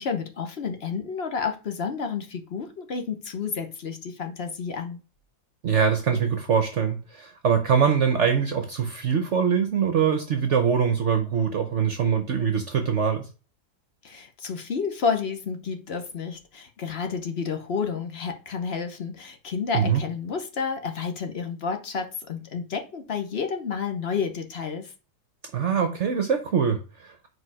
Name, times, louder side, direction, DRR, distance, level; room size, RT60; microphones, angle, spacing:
voice 1, 0.0-5.0 14.0-24.9, left 5 dB, 45° left, 1.0 m, -30 dB
voice 2, 5.6-13.2 19.7-20.0 25.5-27.3, right 7 dB, 55° right, 1.0 m, -23 dB
4.8 x 4.8 x 4.8 m
omnidirectional pair, 1.7 m